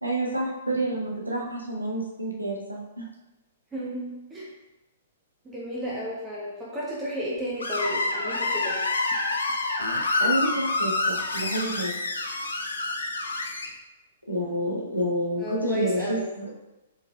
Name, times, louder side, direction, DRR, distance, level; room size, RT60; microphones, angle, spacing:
voice 1, 0.0-3.0 10.2-11.9 14.3-16.5, right 1 dB, 85° right, -2 dB, 0.9 m, -29 dB
voice 2, 3.7-4.5 5.4-8.8 15.4-16.3, equal, 15° right, -5 dB, 0.8 m, -33 dB
Screech, 7.6-13.7, left 2 dB, 70° left, 0.5 m, -27 dB
4.6 x 3.4 x 2.2 m, 1.0 s
figure-of-eight pair, 110°, 0 cm